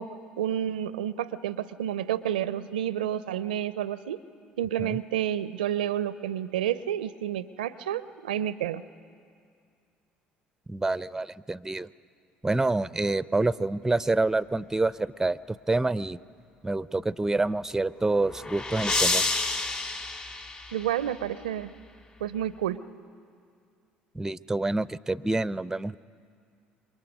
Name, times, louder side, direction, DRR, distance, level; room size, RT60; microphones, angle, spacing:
voice 1, 0.0-4.2 4.6-8.8 20.7-21.7 22.2-22.8, right 10 dB, 85° right, 16 dB, 0.4 m, -30 dB
voice 2, 10.7-11.9 12.4-15.4 15.7-16.2 16.6-19.3 24.1-26.0, right 2 dB, 10° right, 18 dB, 0.5 m, -27 dB
sound 1, 17.8-21.2, left 3 dB, 30° left, 2.6 m, -29 dB
27.0 x 23.5 x 5.3 m, 2.3 s
hypercardioid pair, 60°, 5 cm